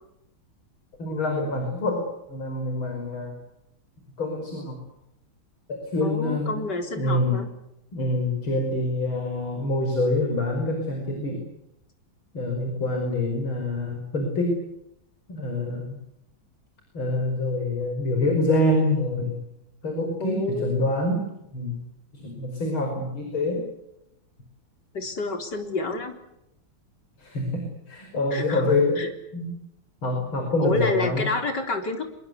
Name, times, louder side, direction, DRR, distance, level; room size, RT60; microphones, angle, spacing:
voice 1, 1.0-3.3 4.2-4.8 5.7-6.5 7.0-7.4 7.9-11.5 12.3-14.6 15.3-16.0 16.9-19.5 19.8-21.8 22.1-23.6 27.2-29.0 29.3-29.5 30.0-31.3, left 2 dB, 80° left, 3 dB, 6.2 m, -26 dB
voice 2, 6.0-7.5 20.2-20.9 24.9-26.2 28.3-29.1 30.6-32.1, left 2 dB, 55° left, 5 dB, 4.5 m, -29 dB
25.5 x 23.0 x 8.3 m, 0.83 s
omnidirectional pair, 2.2 m